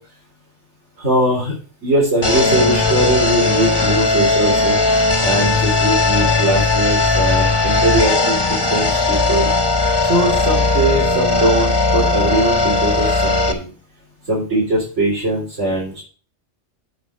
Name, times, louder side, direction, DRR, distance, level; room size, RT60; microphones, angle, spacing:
voice 1, 1.0-1.5 1.8-4.8 5.2-8.4 8.7-9.5 10.1-13.7 14.3-16.0, right 1 dB, 85° right, -5 dB, 4.3 m, -20 dB
sound 1, 2.2-13.5, left 3 dB, 20° left, 1.5 m, -17 dB
8.6 x 8.5 x 4.4 m, 0.39 s
omnidirectional pair, 1.2 m